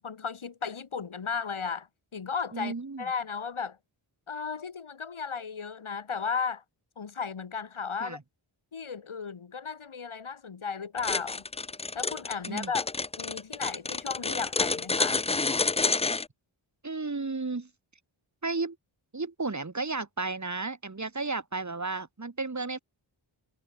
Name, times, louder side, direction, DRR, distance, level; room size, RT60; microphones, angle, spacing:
voice 1, 0.0-1.9 2.1-3.8 4.3-6.6 7.0-8.2 8.7-11.4 11.9-12.9 13.2-15.2, left 6 dB, 80° left, 5.3 m, -35 dB
voice 2, 2.5-3.1 8.0-8.2 12.5-12.7 16.8-17.7 18.4-18.8 19.1-22.8, right 3 dB, 35° right, 2.4 m, -33 dB
sound 1, 11.0-16.3, left 3 dB, 15° left, 0.3 m, -29 dB
wide cardioid pair, 65°, 48 cm